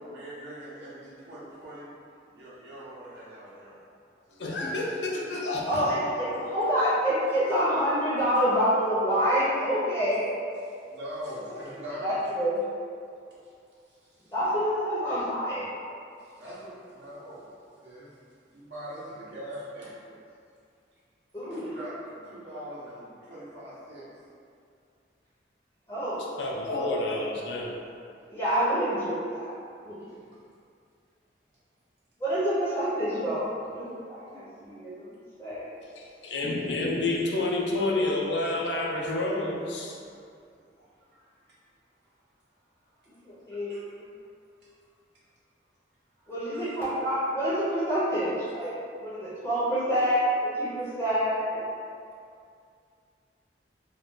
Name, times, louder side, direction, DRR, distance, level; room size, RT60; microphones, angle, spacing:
voice 1, 0.0-1.9 2.3-3.8 4.3-4.4 5.6-5.8 10.6-12.2 13.4-13.5 13.9-14.3 16.2-18.2 18.5-20.2 21.4-24.1 30.0-30.4 36.6-36.9 40.8-41.4 42.8-42.9 43.3-43.9 46.2-46.8 50.8-50.9, equal, 75° right, -9 dB, 0.7 m, -43 dB
voice 2, 4.4-5.6 26.4-27.7 36.0-40.0, left 2 dB, 80° left, -2 dB, 0.5 m, -29 dB
voice 3, 5.7-10.3 12.0-12.6 14.3-15.7 21.3-21.7 25.9-26.2 28.3-29.6 29.8-30.0 32.2-35.1 35.4-35.7 43.2-43.7 46.3-48.7 49.0-51.6, equal, 15° left, -11 dB, 0.5 m, -27 dB
2.3 x 2.2 x 3.7 m, 2.4 s
head